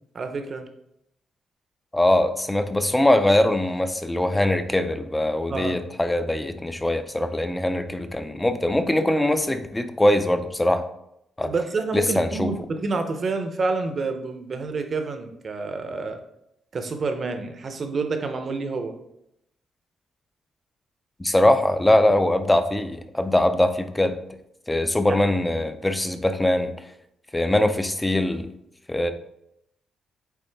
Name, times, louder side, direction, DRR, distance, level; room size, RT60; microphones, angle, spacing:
voice 1, 0.1-0.7 5.5-5.8 11.4-16.2 16.7-19.0 25.1-25.2, right 4 dB, 35° right, 6 dB, 0.6 m, -28 dB
voice 2, 1.9-10.8 11.4-11.5 11.9-12.5 21.2-24.2 24.7-26.7 27.3-28.5 28.9-29.1, left 1 dB, 10° left, 9 dB, 0.4 m, -22 dB
8.3 x 3.5 x 3.4 m, 0.79 s
cardioid pair, 180°, 0 cm